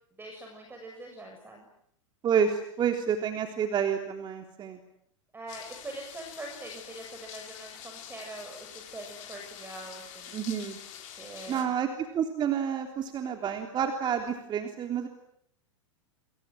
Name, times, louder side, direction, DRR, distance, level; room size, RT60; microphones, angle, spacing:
voice 1, 0.2-1.7 5.3-10.4 11.1-11.7, right 1 dB, 15° right, 3 dB, 7.3 m, -43 dB
voice 2, 2.2-4.8 10.3-10.8 11.5-15.1, right 7 dB, 30° right, 4 dB, 3.5 m, -29 dB
sound 1, 5.5-11.6, left 9 dB, 45° left, 6.7 m, -46 dB
29.0 x 26.5 x 7.9 m, 0.71 s
figure-of-eight pair, 100°, 16 cm